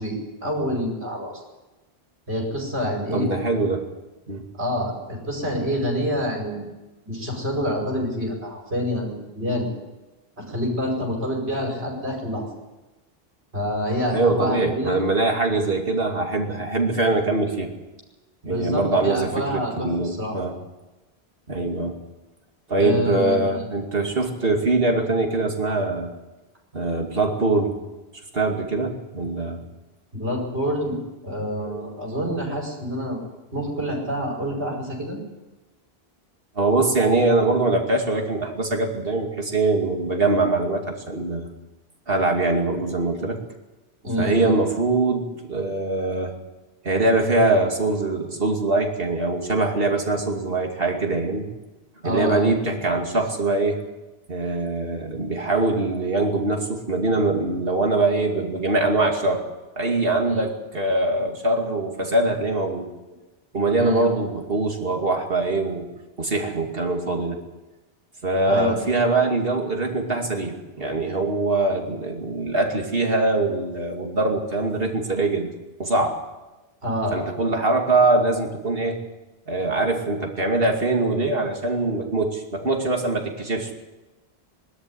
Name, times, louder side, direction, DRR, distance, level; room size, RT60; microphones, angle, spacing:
voice 1, 0.0-1.4 2.3-3.3 4.5-6.7 7.0-9.7 10.4-12.5 13.5-15.0 18.4-20.3 22.8-23.6 30.1-31.0 31.2-33.2 33.5-35.2 44.0-44.5 52.0-52.5 60.3-60.4 63.8-64.1 68.4-69.0 76.8-77.3, equal, 85° right, 0 dB, 5.7 m, -27 dB
voice 2, 3.1-3.9 4.3-4.4 14.1-17.7 18.4-20.5 21.5-22.0 22.7-26.1 26.7-27.8 28.3-29.6 31.6-31.8 36.6-41.5 42.1-43.4 44.2-46.3 46.8-51.5 52.0-53.8 54.3-59.4 59.8-62.9 63.5-65.9 66.2-67.4 68.2-75.5 75.8-76.2 77.1-79.0 79.5-83.7, right 2 dB, 65° right, 2 dB, 2.8 m, -23 dB
21.5 x 13.0 x 9.9 m, 1.1 s
omnidirectional pair, 1.1 m